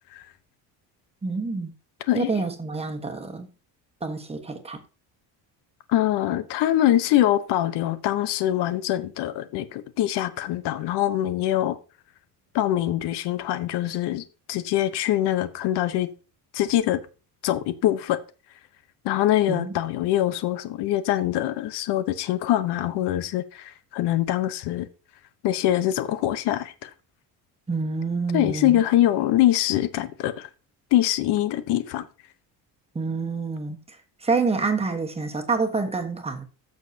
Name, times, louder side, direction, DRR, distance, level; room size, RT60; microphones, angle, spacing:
voice 1, 1.2-1.7 2.1-3.5 4.0-4.8 19.5-19.7 27.7-28.8 32.9-34.0 34.2-36.4, right 4 dB, 15° right, 1.2 m, -27 dB
voice 2, 5.9-11.8 12.5-16.1 16.5-17.0 17.4-18.2 19.0-24.9 25.4-26.9 28.3-30.5 30.9-32.1, left 13 dB, 80° left, 0.8 m, -23 dB
14.5 x 6.4 x 2.7 m
cardioid pair, 140°, 40 cm